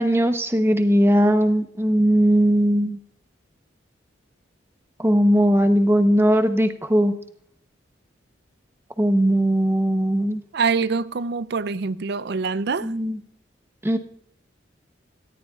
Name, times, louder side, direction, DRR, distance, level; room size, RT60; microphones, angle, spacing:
voice 1, 0.0-3.0 5.0-7.1 9.0-10.4 12.8-13.2 13.8-14.0, equal, 15° right, 0.8 m, -19 dB
voice 2, 10.5-12.9, right 4 dB, 60° right, 0.5 m, -25 dB
18.5 x 13.5 x 2.4 m
head